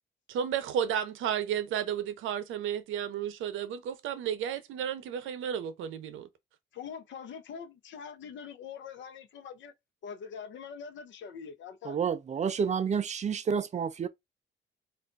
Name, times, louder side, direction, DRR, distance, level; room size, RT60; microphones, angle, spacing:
voice 1, 0.3-6.3, right 9 dB, 85° right, 0.6 m, -32 dB
voice 2, 6.7-9.7 10.0-12.0, left 7 dB, 70° left, 0.7 m, -43 dB
voice 3, 11.8-14.1, right 6 dB, 35° right, 0.4 m, -29 dB
2.4 x 2.2 x 3.8 m
cardioid pair, 90°, 20 cm